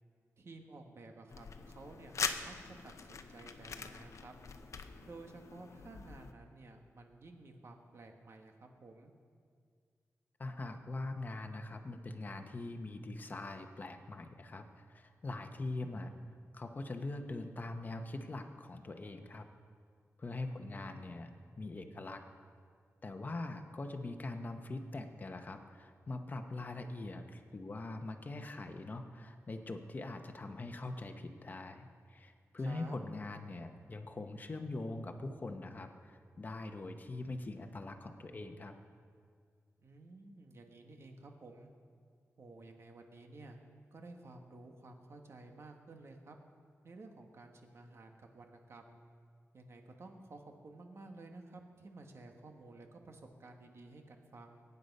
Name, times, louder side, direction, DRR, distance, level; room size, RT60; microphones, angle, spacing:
voice 1, 0.4-4.3 5.0-9.1 20.4-21.2 32.6-33.0 39.8-41.7 42.4-43.6 43.9-46.4 46.8-49.0 49.5-54.6, right 2 dB, 55° right, 3 dB, 1.6 m, -53 dB
sound 1, 1.3-6.3, left 5 dB, 70° left, 0.8 m, -43 dB
voice 2, 10.4-16.1 16.5-19.5 20.2-21.3 21.6-22.2 23.0-38.7, left 2 dB, 35° left, 6 dB, 1.0 m, -42 dB
22.5 x 9.7 x 5.5 m, 2.1 s
wide cardioid pair, 155°, 5 cm